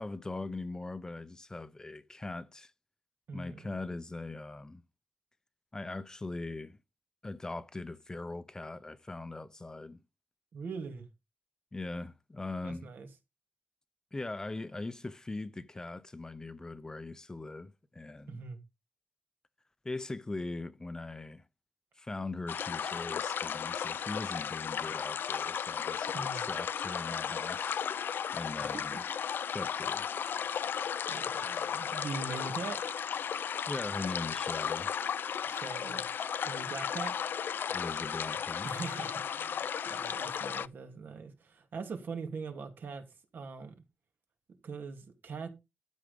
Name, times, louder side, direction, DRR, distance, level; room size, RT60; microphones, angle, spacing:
voice 1, 0.0-2.7 3.3-4.8 5.7-6.8 7.2-10.0 11.7-12.9 14.1-18.4 19.8-21.4 22.0-27.8 28.3-29.0 29.5-30.1 33.7-34.9 37.7-38.7, left 2 dB, 20° left, 0.7 m, -40 dB
voice 2, 3.3-3.8 10.5-11.1 12.6-13.1 18.3-18.6 26.1-26.5 28.6-29.0 31.1-32.8 35.5-36.1 36.4-37.1 38.6-43.0 43.3-43.8 44.6-45.5, right 4 dB, 65° right, 2.7 m, -42 dB
sound 1, 22.5-40.7, left 8 dB, 75° left, 0.5 m, -35 dB
12.5 x 6.4 x 5.2 m
wide cardioid pair, 145°, 4 cm